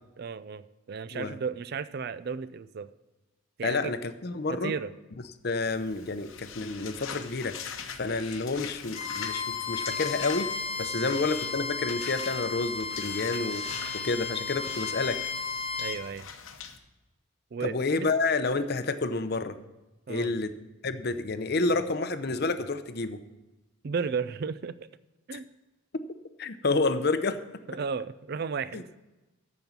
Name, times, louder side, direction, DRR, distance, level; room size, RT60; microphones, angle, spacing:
voice 1, 0.2-2.9 3.6-3.9 4.5-4.9 11.0-11.2 15.8-16.3 17.5-18.1 20.1-20.3 23.8-24.9 25.3-25.5 27.7-28.9, right 5 dB, 50° right, 15 dB, 0.4 m, -34 dB
voice 2, 3.6-4.7 5.4-7.6 8.0-15.2 17.6-19.6 20.1-20.5 20.8-23.2 25.3-25.4 26.4-27.4 28.7-28.8, left 3 dB, 50° left, 11 dB, 0.6 m, -29 dB
sound 1, 5.6-16.8, left 7 dB, 70° left, 0.9 m, -43 dB
Bowed string instrument, 8.9-16.0, left 4 dB, 30° left, 1.0 m, -34 dB
14.0 x 5.3 x 7.1 m, 1.1 s
head